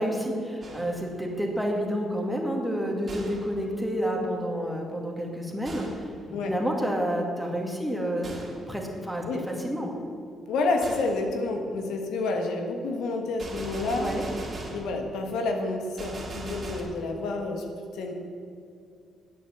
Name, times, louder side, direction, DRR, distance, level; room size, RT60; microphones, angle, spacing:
voice 1, 0.0-6.1 6.4-9.9 14.0-14.3, equal, ahead, 0 dB, 2.1 m, -29 dB
Gunshot gunfire, 0.6-1.1 3.1-3.6 5.6-6.1 8.2-8.7 10.8-11.2 13.4-14.9 16.0-16.8, right 2 dB, 30° right, 3.0 m, -39 dB
voice 2, 10.5-14.1 14.7-17.6 17.9-18.1, left 3 dB, 85° left, 3 dB, 1.5 m, -29 dB
10.0 x 8.1 x 7.2 m, 2.4 s
cardioid pair, 90°, 0 cm